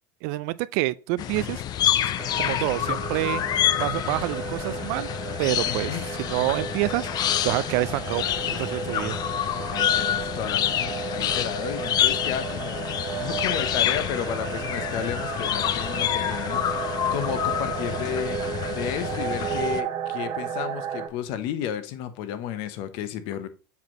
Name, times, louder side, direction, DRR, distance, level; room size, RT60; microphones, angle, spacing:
voice 1, 0.2-1.6 2.4-3.4 3.8-5.1 5.4-5.9 6.2-9.2, right 19 dB, 65° right, 0.3 m, -27 dB
sound 1, 1.2-19.8, left 11 dB, 40° left, 0.5 m, -27 dB
sound 2, 2.2-21.1, right 7 dB, 45° right, 1.8 m, -34 dB
voice 2, 5.6-6.1 9.6-23.5, left 9 dB, 60° left, 0.9 m, -33 dB
7.1 x 4.6 x 3.0 m
supercardioid pair, 105°, 10 cm